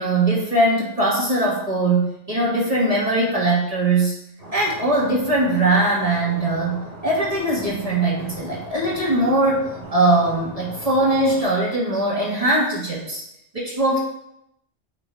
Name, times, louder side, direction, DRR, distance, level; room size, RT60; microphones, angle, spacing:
voice 1, 0.0-4.1 4.5-13.2 13.5-14.0, right 2 dB, 30° right, -5 dB, 1.6 m, -21 dB
Stream, 4.4-11.4, right 1 dB, 55° right, 2.7 m, -39 dB
8.0 x 4.0 x 4.6 m, 0.78 s
omnidirectional pair, 1.2 m